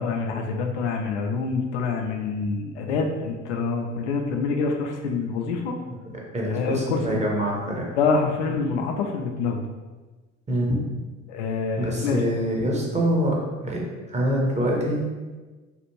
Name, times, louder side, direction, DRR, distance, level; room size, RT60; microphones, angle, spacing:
voice 1, 0.0-5.8 6.5-7.2 8.0-9.6 11.3-12.2, left 4 dB, 70° left, 3 dB, 0.5 m, -26 dB
voice 2, 6.3-7.9 10.5-10.8 11.8-15.0, equal, 20° right, -2 dB, 0.9 m, -25 dB
3.3 x 2.5 x 3.0 m, 1.3 s
figure-of-eight pair, 55°, 35 cm